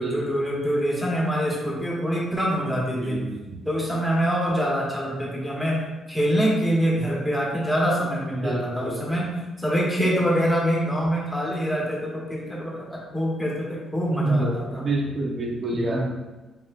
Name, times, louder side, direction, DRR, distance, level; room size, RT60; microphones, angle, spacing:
voice 1, 0.0-3.3 3.6-5.8 6.1-14.8 15.7-16.1, equal, 5° left, -4 dB, 1.5 m, -25 dB
voice 2, 3.0-3.5 8.4-9.1 14.2-16.1, right 2 dB, 45° right, 0 dB, 0.9 m, -28 dB
5.2 x 3.5 x 2.6 m, 1.1 s
cardioid pair, 90°, 0 cm